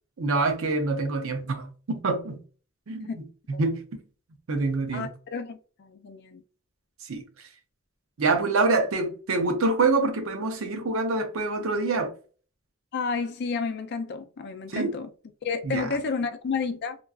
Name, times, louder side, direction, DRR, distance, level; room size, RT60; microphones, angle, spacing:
voice 1, 0.2-2.4 2.9-3.8 4.5-5.2 7.0-7.2 8.2-12.1 14.7-15.0 15.6-16.0, right 3 dB, 80° right, 0.6 m, -26 dB
voice 2, 4.9-6.4 12.9-15.1 15.4-17.0, left 5 dB, 55° left, 0.4 m, -31 dB
3.0 x 2.4 x 2.3 m
head